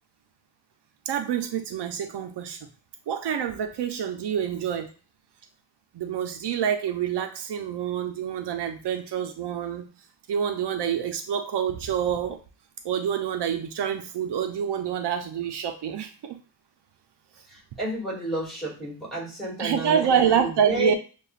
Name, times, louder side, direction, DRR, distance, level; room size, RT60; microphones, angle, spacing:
voice 1, 1.1-2.6 3.1-4.9 5.9-9.9 10.3-12.4 12.8-16.4 19.6-20.9, right 8 dB, 80° right, 0.6 m, -27 dB
voice 2, 17.5-21.0, right 1 dB, ahead, 2.2 m, -31 dB
6.7 x 2.4 x 2.4 m
wide cardioid pair, 150°, 40 cm